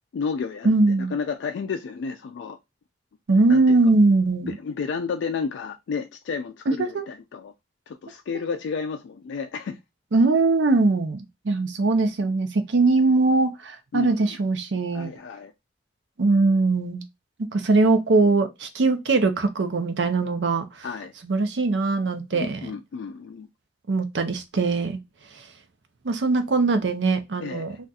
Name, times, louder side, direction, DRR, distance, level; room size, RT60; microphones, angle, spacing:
voice 1, 0.1-0.7 1.1-2.6 3.5-3.8 4.5-7.5 7.9-9.8 13.9-14.2 14.9-15.5 20.8-21.1 22.3-23.5 27.4-27.7, left 5 dB, 90° left, 0.3 m, -31 dB
voice 2, 0.6-1.1 3.3-4.6 6.7-7.0 10.1-15.1 16.2-17.0 17.5-20.6 21.2-22.7 23.9-25.0 26.0-27.8, right 3 dB, 75° right, 0.6 m, -21 dB
2.4 x 2.3 x 4.0 m
head